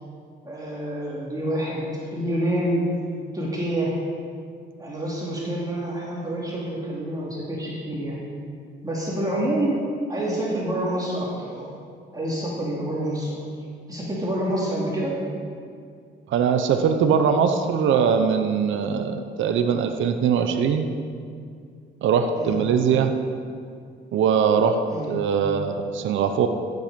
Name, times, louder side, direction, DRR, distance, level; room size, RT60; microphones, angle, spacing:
voice 1, 0.4-2.8 3.3-3.9 4.8-8.2 8.8-9.7 10.1-11.7 12.1-13.4 13.9-15.1 22.3-22.6 24.9-25.1, right 1 dB, 20° right, -6 dB, 2.9 m, -27 dB
voice 2, 16.3-20.9 22.0-23.1 24.1-26.5, right 7 dB, 75° right, 7 dB, 0.8 m, -21 dB
13.5 x 8.1 x 5.2 m, 2.3 s
cardioid pair, 90°, 20 cm